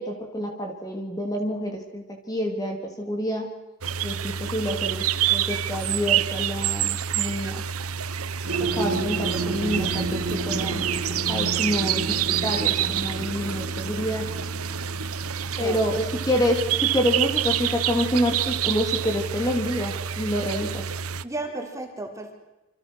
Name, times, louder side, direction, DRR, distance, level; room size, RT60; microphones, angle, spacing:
voice 1, 0.0-3.5 4.0-5.0 5.3-7.6 8.6-10.8 11.3-14.2 15.6-20.8, equal, 15° left, 2 dB, 3.3 m, -27 dB
sound 1, 3.8-21.2, right 9 dB, 85° right, 1.0 m, -27 dB
sound 2, 8.4-17.7, right 2 dB, 70° right, 3.9 m, -32 dB
voice 2, 15.5-15.9 21.2-22.3, right 2 dB, 15° right, 2 dB, 4.2 m, -34 dB
28.0 x 27.5 x 6.5 m, 1.0 s
head